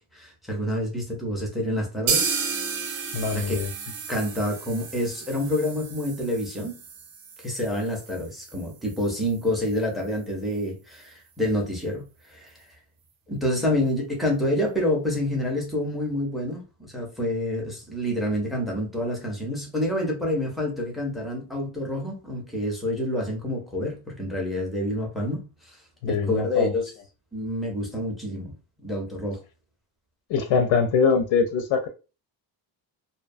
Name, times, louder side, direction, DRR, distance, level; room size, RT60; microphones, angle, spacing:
voice 1, 0.1-2.3 3.3-3.7 4.1-6.8 7.4-12.6 13.3-25.8 26.1-26.9 27.3-28.5 28.8-29.4, left 1 dB, ahead, 0.4 m, -28 dB
sound 1, 2.1-9.8 10.1-10.2 10.5-10.6 11.0-11.1, right 5 dB, 50° right, 0.5 m, -33 dB
voice 2, 3.1-3.7 26.0-26.7 30.3-31.9, left 5 dB, 85° left, 0.6 m, -23 dB
2.6 x 2.2 x 2.5 m
cardioid pair, 180°, 45 cm